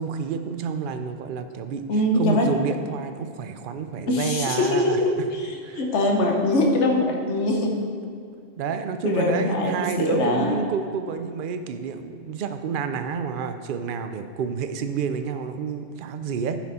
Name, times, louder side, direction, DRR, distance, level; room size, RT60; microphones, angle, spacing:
voice 1, 0.0-1.9 2.2-5.0 5.6-5.8 8.6-16.6, right 6 dB, 55° right, 8 dB, 0.7 m, -29 dB
voice 2, 1.9-2.5 4.1-7.8 9.0-10.6, left 1 dB, 70° left, 0 dB, 1.5 m, -23 dB
11.0 x 6.1 x 4.2 m, 2.3 s
omnidirectional pair, 1.2 m